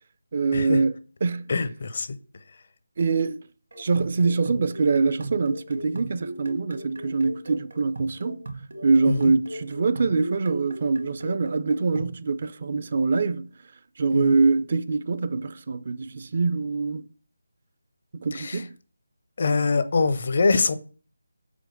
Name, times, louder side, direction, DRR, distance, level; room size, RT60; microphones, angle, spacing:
voice 1, 0.3-1.5 3.0-3.4 3.8-8.5 8.8-13.5 14.0-17.1 18.1-18.8, right 4 dB, 45° right, 0.4 m, -24 dB
voice 2, 1.5-2.2 9.1-9.3 14.1-14.4 18.3-18.6 19.4-20.7, left 4 dB, 45° left, 0.6 m, -24 dB
sound 1, 3.7-12.2, right 2 dB, 65° right, 0.9 m, -38 dB
5.0 x 3.7 x 5.0 m
figure-of-eight pair, 160°, 0 cm